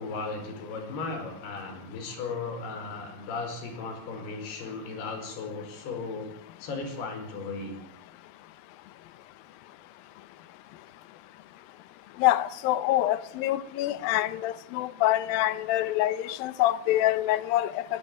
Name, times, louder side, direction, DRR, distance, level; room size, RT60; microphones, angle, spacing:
voice 1, 0.0-6.3 6.6-7.8, left 4 dB, 55° left, 6.7 m, -36 dB
voice 2, 12.2-17.8, left 14 dB, 80° left, 2.1 m, -25 dB
21.5 x 17.0 x 8.6 m
omnidirectional pair, 5.6 m